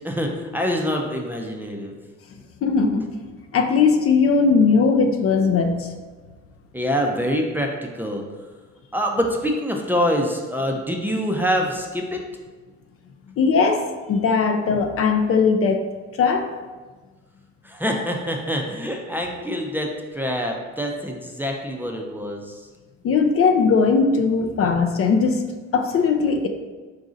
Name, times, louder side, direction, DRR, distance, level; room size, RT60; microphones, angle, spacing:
voice 1, 0.0-2.0 6.7-8.2 8.9-12.2 17.6-22.6, equal, 5° right, 0 dB, 0.4 m, -25 dB
voice 2, 2.6-3.1 3.5-5.9 13.4-15.8 16.2-16.5 23.0-25.4 25.7-26.5, left 5 dB, 50° left, 5 dB, 0.4 m, -19 dB
4.0 x 2.5 x 3.8 m, 1.3 s
cardioid pair, 90°, 30 cm